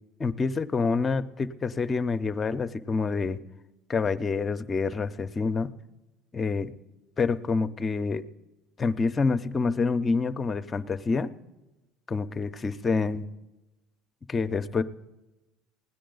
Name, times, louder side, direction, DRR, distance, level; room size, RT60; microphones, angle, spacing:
voice 1, 0.2-3.4 3.9-5.7 6.3-6.7 7.2-8.2 8.8-11.3 12.1-13.2 14.3-14.8, left 4 dB, 30° left, 11 dB, 0.7 m, -27 dB
17.5 x 10.0 x 3.9 m, 1.0 s
hypercardioid pair, 80°, 0 cm